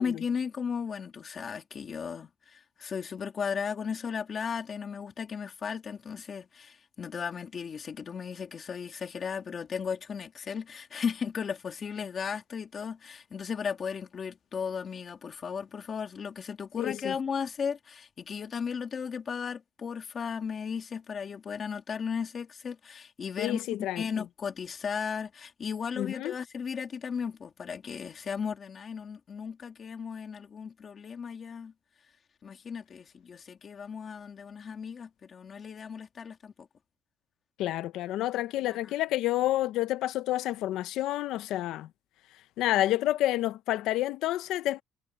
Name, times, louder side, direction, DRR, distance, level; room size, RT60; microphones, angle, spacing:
voice 1, 0.0-31.7 32.4-36.7 38.7-38.9, left 6 dB, 25° left, 3.2 m, -35 dB
voice 2, 16.8-17.1 23.4-24.2 26.0-26.3 37.6-41.9 42.6-44.8, left 14 dB, 60° left, 0.7 m, -29 dB
cardioid pair, 180°, 0 cm